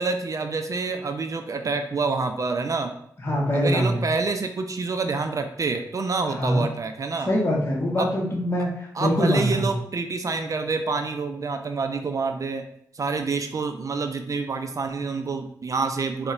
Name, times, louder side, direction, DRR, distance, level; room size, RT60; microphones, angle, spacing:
voice 1, 0.0-2.9 3.5-7.3 8.0-8.1 8.9-12.6 12.9-16.3, right 4 dB, 50° right, 6 dB, 0.3 m, -27 dB
voice 2, 3.2-4.1 6.4-6.6 7.3-8.7 9.0-9.6, equal, 35° left, -3 dB, 0.8 m, -23 dB
3.9 x 2.1 x 2.4 m, 0.68 s
cardioid pair, 45°, 7 cm